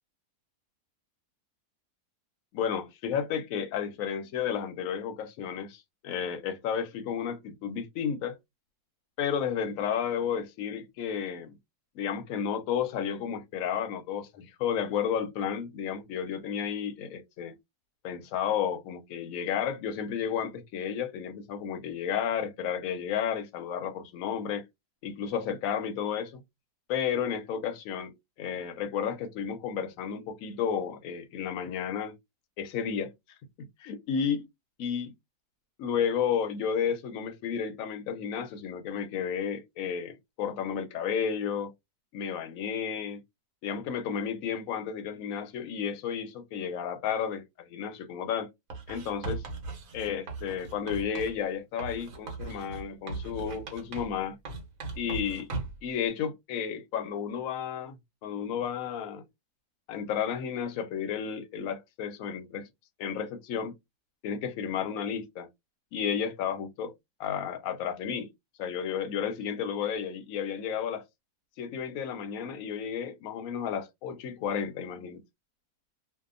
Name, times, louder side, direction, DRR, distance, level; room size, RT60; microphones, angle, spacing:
voice 1, 2.5-8.4 9.2-11.6 12.0-17.5 18.0-24.6 25.0-26.4 26.9-32.2 32.6-33.1 33.8-34.5 34.8-35.1 35.8-41.7 42.1-43.2 43.6-48.5 48.9-49.4 49.9-54.4 55.0-55.5 55.8-58.0 58.2-59.2 59.9-62.7 63.0-63.7 64.2-65.5 65.9-66.9 67.2-68.3 68.6-71.0 71.6-75.2, left 7 dB, 70° left, 0.9 m, -32 dB
Writing, 48.7-51.4 51.8-54.2 54.5-55.9, right 3 dB, 65° right, 1.1 m, -38 dB
2.7 x 2.3 x 2.4 m
omnidirectional pair, 1.7 m